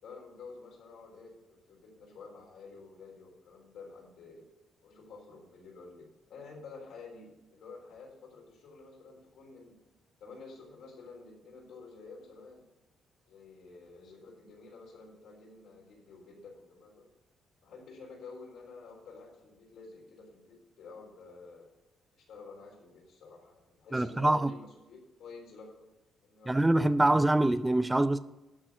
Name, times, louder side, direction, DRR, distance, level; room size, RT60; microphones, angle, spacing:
voice 1, 0.0-4.5 4.8-9.8 10.2-12.6 13.3-17.1 17.6-21.7 22.2-25.7 26.2-26.8, left 4 dB, 75° left, 3.8 m, -50 dB
voice 2, 23.9-24.5 26.5-28.2, right 1 dB, 15° right, 0.4 m, -25 dB
12.0 x 4.1 x 7.5 m
cardioid pair, 90°, 0 cm